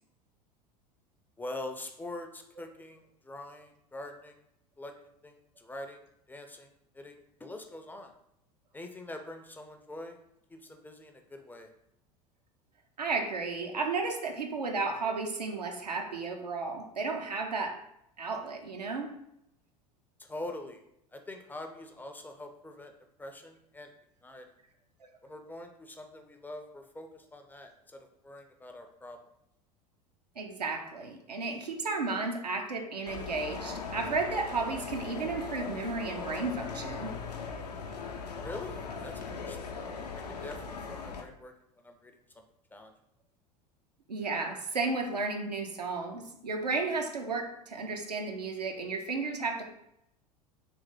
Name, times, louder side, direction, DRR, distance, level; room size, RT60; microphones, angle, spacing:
voice 1, 1.4-4.4 4.8-4.9 5.2-6.0 6.3-6.7 6.9-8.1 8.7-10.2 10.5-11.7 20.2-20.8 21.1-22.9 23.2-23.9 24.2-24.5 25.2-29.2 38.4-39.7 40.1-41.5 41.8-42.4 42.7-42.9, left 1 dB, 10° left, 5 dB, 0.4 m, -44 dB
voice 2, 13.0-17.8 18.2-19.2 30.4-37.2 44.1-49.6, right 3 dB, 85° right, 3 dB, 0.6 m, -33 dB
sound 1, 33.1-41.2, left 5 dB, 80° left, 0.6 m, -39 dB
3.4 x 3.1 x 3.5 m, 0.79 s
figure-of-eight pair, 75°, 20 cm